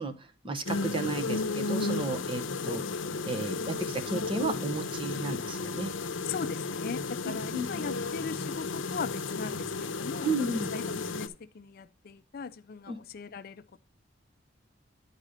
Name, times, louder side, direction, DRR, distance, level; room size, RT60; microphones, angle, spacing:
voice 1, 0.0-2.8 3.2-5.9 7.2-7.7 10.2-10.7 12.9-13.0, right 2 dB, 25° right, 0.9 m, -33 dB
sound 1, 0.7-11.3, left 3 dB, 75° left, 0.7 m, -33 dB
voice 2, 6.3-10.3 10.7-13.8, left 5 dB, 50° left, 0.4 m, -39 dB
10.0 x 4.1 x 5.0 m
head